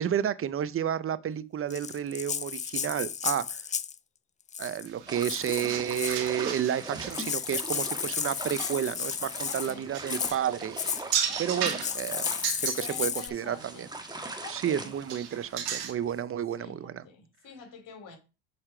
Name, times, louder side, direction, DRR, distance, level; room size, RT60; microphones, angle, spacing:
voice 1, 0.0-3.6 4.6-10.8 11.4-12.2 12.6-13.9 14.5-17.0, right 9 dB, 35° right, 0.6 m, -31 dB
Rattle (instrument), 1.7-4.0 4.5-4.9 5.2-6.3 6.8-6.9 7.1-9.7 10.1-10.4 10.8-11.0 11.7-13.3, left 7 dB, 20° left, 0.3 m, -33 dB
sound 1, 4.9-13.3 13.6-14.7 14.9-15.9, right 8 dB, 70° right, 1.6 m, -36 dB
sound 2, 5.1-16.2, right 2 dB, 10° right, 1.4 m, -42 dB
voice 2, 9.5-9.9 11.3-11.8 12.8-13.9 14.4-14.9 16.6-18.2, left 5 dB, 55° left, 3.3 m, -46 dB
6.7 x 4.3 x 5.0 m
supercardioid pair, 75°, 39 cm